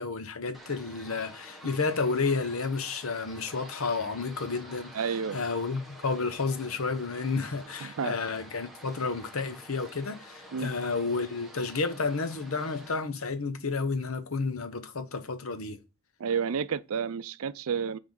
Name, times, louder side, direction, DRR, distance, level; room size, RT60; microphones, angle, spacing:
voice 1, 0.0-5.0 5.3-15.8, left 4 dB, 70° left, 0.9 m, -31 dB
sound 1, 0.5-12.9, right 1 dB, ahead, 1.2 m, -49 dB
voice 2, 4.9-5.4 7.8-8.1 10.5-10.7 16.2-18.0, right 6 dB, 75° right, 0.5 m, -30 dB
6.1 x 3.5 x 5.1 m
head